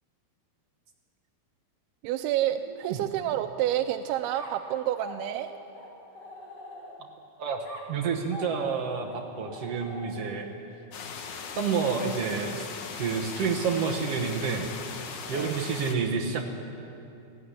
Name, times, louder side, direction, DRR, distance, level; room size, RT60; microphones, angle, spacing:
voice 1, 2.0-5.5 15.3-15.6, right 12 dB, 90° right, 6 dB, 2.6 m, -29 dB
sound 1, 4.3-7.2 7.6-10.5, left 1 dB, 30° left, 3.0 m, -44 dB
voice 2, 7.4-10.5 11.6-12.6 12.9-14.7 15.3-16.5, right 5 dB, 65° right, 2 dB, 1.5 m, -29 dB
sound 2, 10.9-16.0, left 6 dB, 60° left, 2.3 m, -39 dB
17.0 x 16.0 x 9.9 m, 2.7 s
omnidirectional pair, 4.4 m